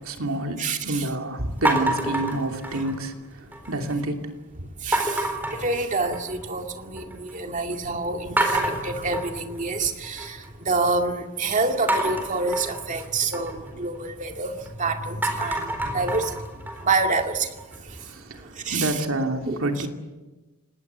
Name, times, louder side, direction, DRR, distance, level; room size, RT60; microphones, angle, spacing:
voice 1, 0.0-4.3 18.0-19.9, right 2 dB, 70° right, 4 dB, 2.9 m, -28 dB
voice 2, 0.6-1.1 2.7-2.8 4.8-14.5 14.8-16.4 16.8-17.5 17.9-18.0 18.6-19.1 19.4-19.9, right 3 dB, 35° right, 4 dB, 2.3 m, -27 dB
sound 1, 1.7-3.1 3.5-4.0 4.9-6.5 6.8-7.3 7.7-7.8 8.4-10.5 11.9-14.7 15.1-18.0, right 1 dB, 10° right, 4.2 m, -28 dB
28.0 x 19.5 x 8.3 m, 1.1 s
head